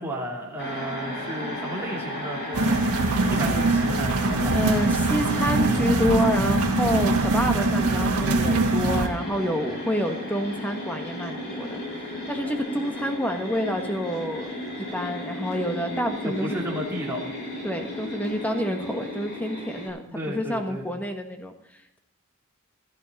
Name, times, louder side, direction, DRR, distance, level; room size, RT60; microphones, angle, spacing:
voice 1, 0.0-2.8 3.1-4.6 16.2-17.2 20.1-20.8, equal, 10° right, -4 dB, 3.3 m, -33 dB
sound 1, 0.6-19.9, left 1 dB, 55° left, 7.2 m, -34 dB
sound 2, 2.5-9.1, right 2 dB, 85° right, 1.5 m, -23 dB
voice 2, 4.5-14.6 14.9-16.6 17.6-22.0, equal, 5° left, 5 dB, 1.5 m, -28 dB
16.5 x 13.0 x 4.2 m, 0.77 s
head